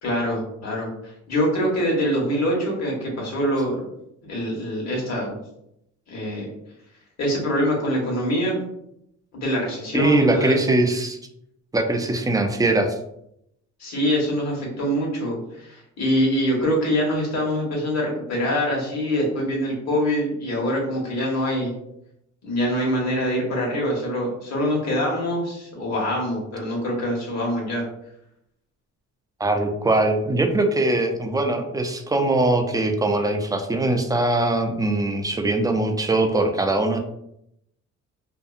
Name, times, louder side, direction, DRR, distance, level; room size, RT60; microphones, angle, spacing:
voice 1, 0.0-3.8 4.3-5.3 6.1-6.5 7.2-8.6 9.3-10.6 13.8-21.7 22.4-27.8, equal, 60° left, -2 dB, 1.2 m, -24 dB
voice 2, 9.9-11.2 11.7-13.0 29.4-37.0, right 2 dB, 15° right, 5 dB, 0.3 m, -21 dB
2.7 x 2.4 x 2.4 m, 0.78 s
cardioid pair, 90°, 30 cm